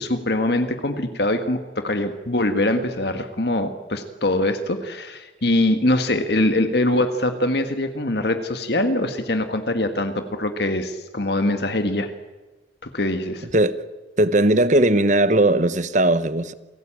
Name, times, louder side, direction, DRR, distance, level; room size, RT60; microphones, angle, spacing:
voice 1, 0.0-12.1 12.8-13.5, left 1 dB, 60° left, 1.7 m, -23 dB
voice 2, 14.2-16.5, right 1 dB, 40° right, 1.1 m, -18 dB
28.5 x 17.5 x 8.9 m
head